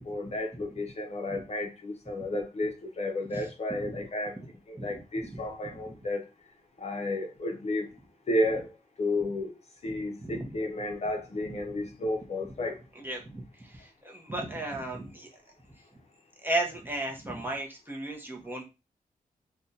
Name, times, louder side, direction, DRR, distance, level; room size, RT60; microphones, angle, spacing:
voice 1, 0.1-4.4 4.7-6.3 6.8-7.9 8.3-9.5 9.8-12.8, left 1 dB, 45° left, 3 dB, 0.6 m, -32 dB
voice 2, 4.8-6.0 9.9-10.0 10.2-10.6 11.7-11.8 12.4-12.5 12.9-15.3 16.4-18.6, right 1 dB, 15° right, -1 dB, 0.7 m, -36 dB
2.5 x 2.2 x 3.9 m, 0.26 s
wide cardioid pair, 160°, 15 cm